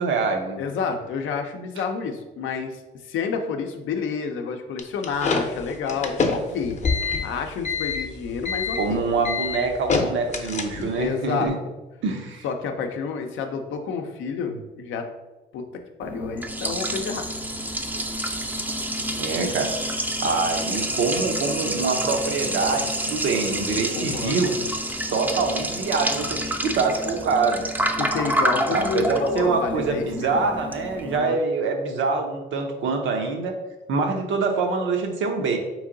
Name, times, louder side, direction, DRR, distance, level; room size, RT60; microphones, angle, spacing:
voice 1, 0.0-0.6 8.8-11.5 12.0-12.4 19.2-19.8 20.2-24.5 25.1-27.7 28.7-33.6 33.9-35.6, right 4 dB, 75° right, 3 dB, 0.7 m, -25 dB
voice 2, 0.6-6.8 7.2-9.0 11.0-11.5 12.4-15.1 15.5-17.3 23.8-24.6 28.0-30.4 31.1-31.4, left 5 dB, 80° left, 5 dB, 0.5 m, -29 dB
sound 1, 4.8-11.0, left 4 dB, 35° left, 0.6 m, -26 dB
Liquid, 16.0-31.2, right 1 dB, 10° right, 0.4 m, -28 dB
3.7 x 3.1 x 3.8 m, 1.1 s
cardioid pair, 90°, 20 cm